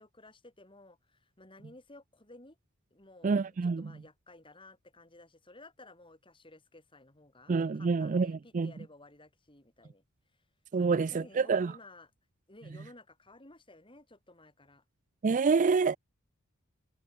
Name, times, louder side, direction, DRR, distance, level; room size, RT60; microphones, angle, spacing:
voice 1, 0.0-2.6 2.9-10.0 10.8-12.1 12.5-14.8, left 2 dB, 25° left, 6.1 m, -55 dB
voice 2, 3.2-3.8 7.5-8.7 10.7-11.7 15.2-16.0, right 4 dB, 35° right, 0.4 m, -27 dB
head